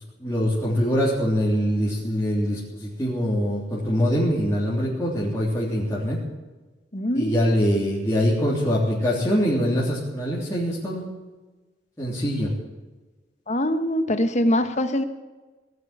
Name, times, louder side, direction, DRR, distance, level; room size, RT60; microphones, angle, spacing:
voice 1, 0.2-6.2 7.1-11.0 12.0-12.5, equal, 15° left, -7 dB, 3.4 m, -23 dB
voice 2, 6.9-7.6 13.5-15.0, left 1 dB, 40° left, 9 dB, 1.3 m, -23 dB
18.5 x 8.0 x 9.8 m, 1.2 s
head